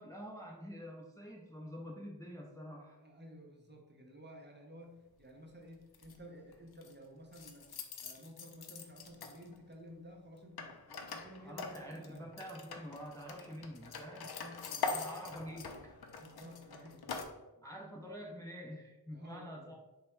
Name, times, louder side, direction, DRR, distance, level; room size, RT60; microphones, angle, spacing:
voice 1, 0.0-3.0 11.4-14.3 14.8-15.9 17.6-19.8, equal, 10° left, -1 dB, 0.5 m, -47 dB
voice 2, 2.9-7.7 8.0-12.3 14.3-15.2 16.2-17.7 19.1-19.8, equal, 25° right, 0 dB, 0.7 m, -54 dB
sound 1, 5.9-6.2 6.5-6.9 7.3-9.7 10.6-17.2, left 4 dB, 70° left, 0.5 m, -43 dB
3.3 x 2.2 x 4.3 m, 1.1 s
wide cardioid pair, 45°, 39 cm